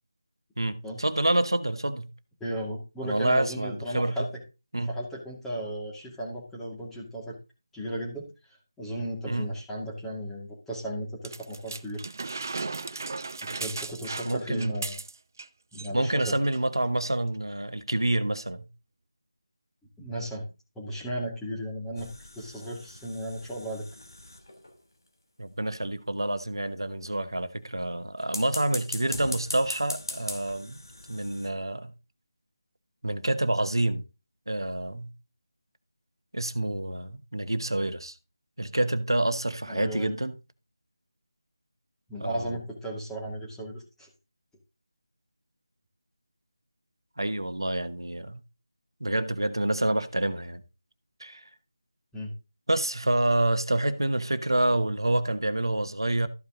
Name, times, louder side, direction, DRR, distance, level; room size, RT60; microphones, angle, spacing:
voice 1, 0.6-2.1 3.0-4.3 4.7-4.9 9.3-9.5 14.2-14.8 15.9-18.7 25.4-30.8 31.1-31.9 33.0-34.0 34.5-35.1 36.3-38.1 38.6-40.3 42.2-42.5 47.2-48.4 49.0-50.6 51.2-51.4 52.7-56.3, right 1 dB, 80° right, 1.2 m, -27 dB
voice 2, 2.4-4.4 4.7-7.4 7.7-8.3 8.8-12.0 13.4-15.0 15.7-16.3 20.0-20.4 20.8-22.1 22.4-23.9 39.7-40.1 42.1-44.1 52.1-52.3, equal, 5° left, 2.3 m, -35 dB
sound 1, 11.2-15.5 15.7-15.9 16.2-16.6 17.3-17.4, right 3 dB, 45° right, 0.6 m, -36 dB
sound 2, 22.0-24.8 28.2-31.5, left 2 dB, 70° left, 2.6 m, -40 dB
13.5 x 5.3 x 3.8 m
figure-of-eight pair, 160°, 2 cm